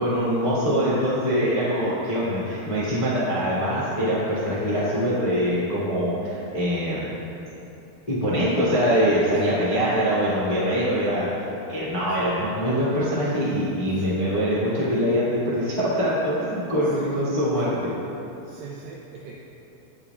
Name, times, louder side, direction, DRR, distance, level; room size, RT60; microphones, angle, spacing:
voice 1, 0.0-7.2 8.1-17.7, equal, 25° left, -10 dB, 0.8 m, -23 dB
voice 2, 1.4-1.8 9.3-9.6 12.1-12.4 13.9-14.2 16.8-17.2 17.6-17.7 18.4-19.4, right 6 dB, 85° right, -2 dB, 2.1 m, -42 dB
18.0 x 6.8 x 2.4 m, 2.9 s
omnidirectional pair, 4.9 m